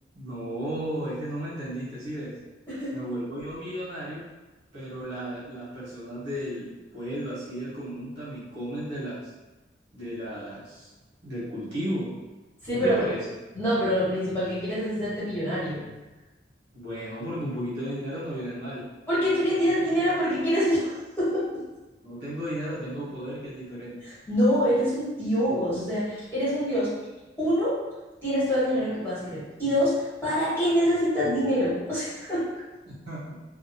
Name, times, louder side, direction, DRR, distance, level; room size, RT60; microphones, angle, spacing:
voice 1, 0.1-2.4 2.9-4.2 4.7-9.2 9.9-10.9 11.2-12.1 12.7-13.2 16.7-18.8 22.0-24.0 32.8-33.4, equal, 65° right, -9 dB, 1.2 m, -34 dB
voice 2, 2.7-3.0 12.6-13.1 13.5-15.8 19.1-21.6 24.0-26.9 27.4-27.8 28.2-32.5, equal, 15° left, -12 dB, 1.3 m, -25 dB
2.7 x 2.3 x 2.7 m, 1.1 s
head